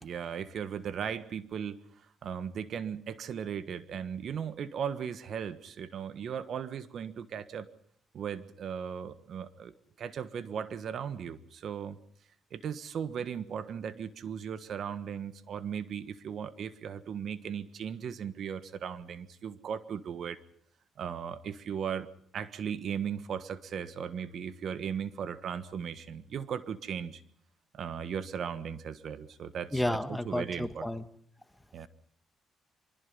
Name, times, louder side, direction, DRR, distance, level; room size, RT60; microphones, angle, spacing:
voice 1, 0.0-7.7 8.1-12.0 12.5-20.4 21.0-22.1 22.3-27.2 27.7-30.9 31.7-31.9, right 7 dB, 65° right, 13 dB, 1.4 m, -37 dB
voice 2, 29.7-31.0, left 1 dB, 5° left, 10 dB, 1.6 m, -31 dB
24.5 x 22.5 x 5.5 m, 0.66 s
cardioid pair, 90°, 0 cm